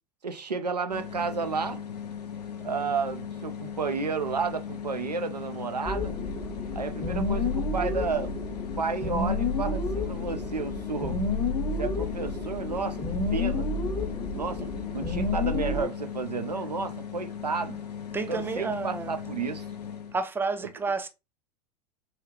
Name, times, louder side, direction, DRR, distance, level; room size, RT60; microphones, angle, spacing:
voice 1, 0.2-1.8 2.6-6.2 6.7-8.4 8.8-11.2 11.8-13.1 13.3-13.7 14.3-17.8 18.3-19.7, right 5 dB, 90° right, 0.5 m, -32 dB
sound 1, 0.9-20.2, left 8 dB, 85° left, 0.5 m, -38 dB
sound 2, 5.9-15.8, left 3 dB, 25° left, 0.9 m, -30 dB
voice 2, 18.1-19.2 20.1-21.1, right 4 dB, 10° right, 0.5 m, -31 dB
4.9 x 2.4 x 3.0 m
figure-of-eight pair, 80°, 20 cm